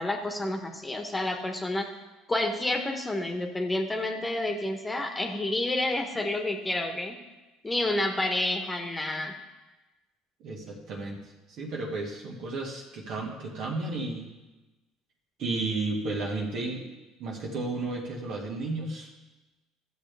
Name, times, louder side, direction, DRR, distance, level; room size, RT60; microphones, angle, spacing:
voice 1, 0.0-1.9 2.3-7.2 7.6-9.3, left 1 dB, 15° left, 4 dB, 1.4 m, -29 dB
voice 2, 10.4-11.2 11.5-14.3 15.4-16.9 17.2-19.1, right 3 dB, 60° right, -1 dB, 2.0 m, -33 dB
14.5 x 7.1 x 3.5 m, 1.1 s
hypercardioid pair, 70°, 0 cm